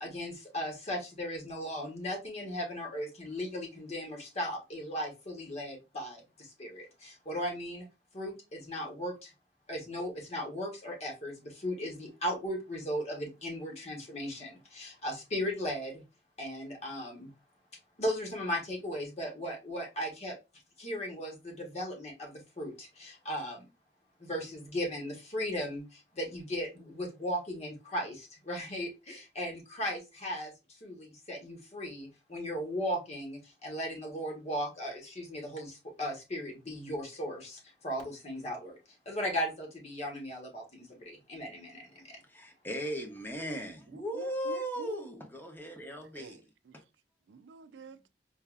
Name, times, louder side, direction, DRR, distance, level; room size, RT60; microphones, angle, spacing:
voice 1, 0.0-7.9 8.1-9.3 9.7-16.0 16.4-17.3 18.0-20.4 20.8-23.7 24.2-30.5 30.8-38.8 39.0-42.2, equal, 40° left, 1.3 m, -37 dB
voice 2, 42.3-46.3, equal, 10° left, 0.8 m, -37 dB
voice 3, 43.9-45.0 46.1-46.4 47.3-48.1, right 4 dB, 75° right, 0.4 m, -48 dB
4.6 x 2.6 x 2.4 m
head